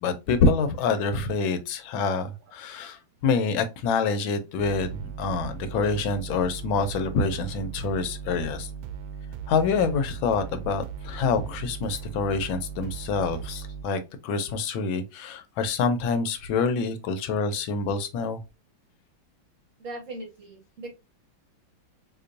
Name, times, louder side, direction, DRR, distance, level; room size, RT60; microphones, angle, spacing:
voice 1, 0.0-8.7 9.5-18.4, left 4 dB, 85° left, 1.5 m, -26 dB
sound 1, 4.6-13.8, right 7 dB, 85° right, 1.4 m, -38 dB
voice 2, 19.8-20.9, right 2 dB, 55° right, 1.0 m, -39 dB
3.9 x 2.9 x 2.6 m
omnidirectional pair, 2.1 m